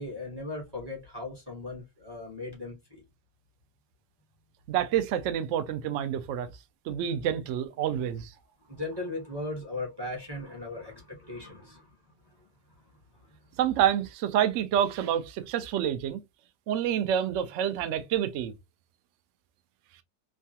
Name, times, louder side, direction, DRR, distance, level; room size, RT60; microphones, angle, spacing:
voice 1, 0.0-3.0 8.6-11.9 12.3-12.5 13.2-13.4, left 2 dB, 20° right, 0.8 m, -38 dB
voice 2, 4.7-6.5 6.9-8.3 13.6-16.2 16.7-18.5, right 10 dB, 90° right, 0.6 m, -28 dB
3.1 x 2.3 x 2.7 m
omnidirectional pair, 1.9 m